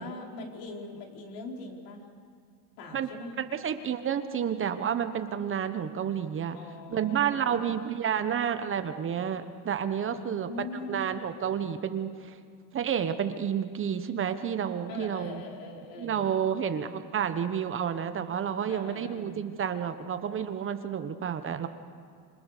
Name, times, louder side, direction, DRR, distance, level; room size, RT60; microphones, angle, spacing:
voice 1, 0.0-2.0 2.8-3.3 6.5-7.8 10.1-11.0 14.9-16.3 18.7-19.5, left 2 dB, 70° left, 0 dB, 4.8 m, -42 dB
voice 2, 3.4-6.6 6.9-10.5 10.9-12.4 12.7-15.4 16.0-21.7, right 8 dB, 30° right, 9 dB, 1.2 m, -30 dB
27.0 x 26.0 x 6.8 m, 2.3 s
supercardioid pair, 130°, 43 cm